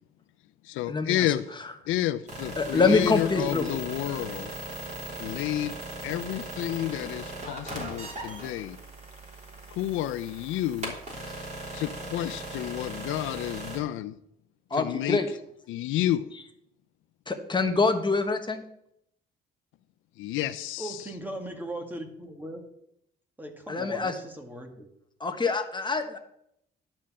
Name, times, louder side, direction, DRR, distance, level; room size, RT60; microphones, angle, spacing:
voice 1, 0.6-1.5 1.9-4.5 5.2-8.8 9.7-11.0 11.7-14.2 14.7-15.2 15.7-16.3 20.2-21.0, left 13 dB, 90° left, 0.5 m, -30 dB
sound 1, 2.3-13.8, right 2 dB, 35° right, 3.5 m, -39 dB
voice 2, 2.6-3.6 14.7-15.3 17.3-18.6 23.7-24.1 25.2-26.2, left 4 dB, 25° left, 1.3 m, -25 dB
voice 3, 20.8-22.6 23.4-24.9, right 1 dB, 10° right, 1.9 m, -38 dB
11.5 x 4.5 x 7.3 m
cardioid pair, 90°, 20 cm